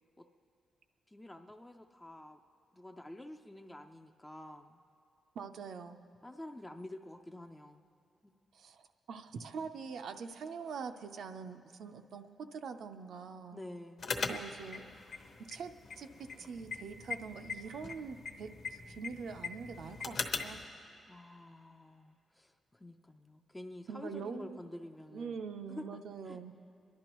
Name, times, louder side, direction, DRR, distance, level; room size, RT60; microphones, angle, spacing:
voice 1, 1.1-2.4 2.7-4.8 6.2-7.8 8.2-8.3 13.5-14.1 21.1-25.4 25.7-26.4, left 1 dB, 10° left, 4 dB, 0.3 m, -49 dB
voice 2, 5.3-6.0 8.5-13.6 14.3-14.9 15.4-20.6 23.9-24.6 25.1-26.5, right 5 dB, 70° right, 8 dB, 0.5 m, -44 dB
sound 1, 14.0-20.6, left 4 dB, 50° left, 0.8 m, -41 dB
26.5 x 11.5 x 3.0 m, 2.6 s
wide cardioid pair, 160°, 0 cm